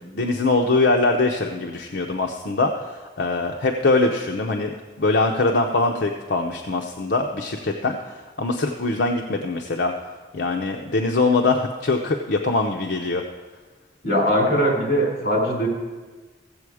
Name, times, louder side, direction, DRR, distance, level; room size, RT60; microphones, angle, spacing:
voice 1, 0.1-4.7 5.0-9.9 10.3-13.2, left 3 dB, 80° left, 2 dB, 0.7 m, -22 dB
voice 2, 14.0-15.7, equal, 60° left, -1 dB, 4.2 m, -21 dB
15.5 x 7.7 x 4.8 m, 1.3 s
head